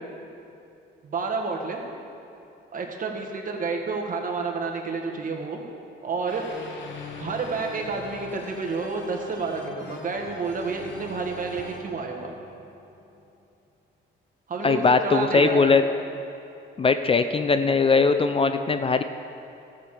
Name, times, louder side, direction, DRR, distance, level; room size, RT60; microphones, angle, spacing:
voice 1, 1.0-1.9 2.7-5.6 6.0-6.4 7.2-12.3 14.5-15.7, right 4 dB, 45° right, 1 dB, 1.6 m, -30 dB
sound 1, 6.3-13.2, left 4 dB, 70° left, 1.2 m, -42 dB
voice 2, 14.6-15.8 16.8-19.0, left 4 dB, 30° left, 9 dB, 0.4 m, -20 dB
14.0 x 7.5 x 4.9 m, 2.7 s
cardioid pair, 90°, 20 cm